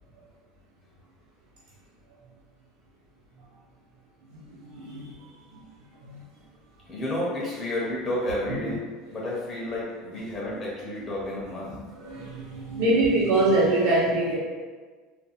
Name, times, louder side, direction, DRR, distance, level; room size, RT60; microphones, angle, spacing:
voice 1, 4.4-5.1 6.0-6.2 12.0-14.4, right 2 dB, 80° right, -8 dB, 0.8 m, -24 dB
voice 2, 6.8-8.8 9.1-12.3 12.7-12.8, left 1 dB, 20° left, -6 dB, 0.5 m, -31 dB
2.4 x 2.3 x 2.8 m, 1.5 s
cardioid pair, 150°, 0 cm